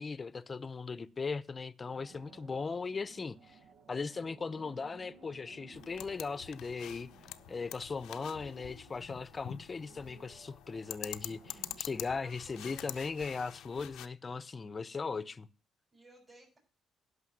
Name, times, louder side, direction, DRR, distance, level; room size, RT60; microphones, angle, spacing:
voice 1, 0.0-3.6 3.9-7.1 7.5-15.5, left 4 dB, 35° left, 0.7 m, -38 dB
sound 1, 1.9-11.8, right 5 dB, 85° right, 1.1 m, -58 dB
sound 2, 5.7-14.1, left 13 dB, 90° left, 0.6 m, -47 dB
voice 2, 12.2-13.2 15.9-16.6, right 2 dB, 30° right, 4.8 m, -59 dB
11.5 x 5.7 x 7.8 m
cardioid pair, 90°, 0 cm